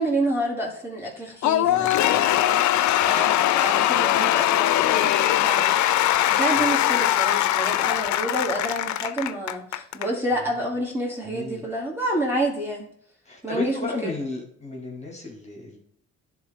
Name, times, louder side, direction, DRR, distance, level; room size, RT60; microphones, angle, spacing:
voice 1, 0.0-5.8 6.3-12.9 13.4-13.7 14.0-14.1, right 1 dB, 10° right, -3 dB, 2.5 m, -29 dB
Cheering / Applause / Crowd, 1.4-10.1, left 13 dB, 70° left, 0.5 m, -21 dB
voice 2, 1.6-2.4 6.5-6.6 10.3-10.5 11.2-11.6 13.3-15.8, left 2 dB, 20° left, -2 dB, 2.1 m, -34 dB
10.5 x 3.6 x 4.1 m, 0.62 s
cardioid pair, 90°, 30 cm